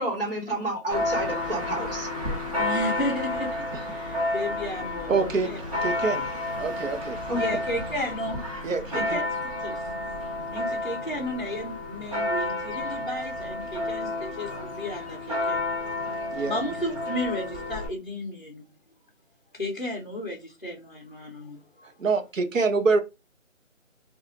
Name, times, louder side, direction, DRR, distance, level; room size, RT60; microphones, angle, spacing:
voice 1, 0.0-2.1 7.3-7.4, right 1 dB, 45° right, 1.3 m, -30 dB
Church bell, 0.9-17.9, left 2 dB, 25° right, 1.0 m, -31 dB
voice 2, 2.5-5.6 7.3-8.4 8.9-9.9 10.5-15.6 16.4-18.7 19.5-21.9, left 1 dB, 40° left, 0.5 m, -33 dB
voice 3, 5.1-5.5 5.8-6.3 6.6-7.2 8.6-9.2 16.3-16.6 21.8-23.0, right 4 dB, 75° right, 0.7 m, -26 dB
2.4 x 2.3 x 2.9 m
figure-of-eight pair, 180°, 39 cm